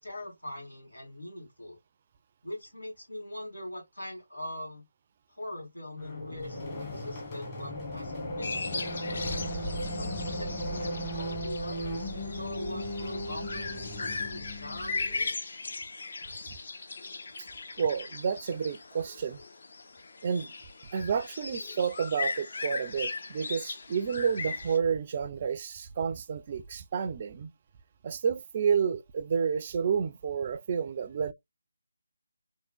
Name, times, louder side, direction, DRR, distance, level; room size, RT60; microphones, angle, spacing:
voice 1, 0.0-1.8 2.4-4.8 5.3-9.2 9.8-15.4, left 1 dB, 85° left, 2.6 m, -42 dB
sound 1, 6.0-15.2, equal, 25° left, 1.4 m, -37 dB
sound 2, 8.4-24.8, left 4 dB, 50° left, 0.5 m, -38 dB
sound 3, 9.1-15.3, equal, 5° left, 0.6 m, -41 dB
voice 2, 17.8-19.4 20.2-20.5 20.9-27.5 28.0-31.3, right 6 dB, 30° right, 0.3 m, -30 dB
3.6 x 3.2 x 2.3 m
figure-of-eight pair, 155°, 0 cm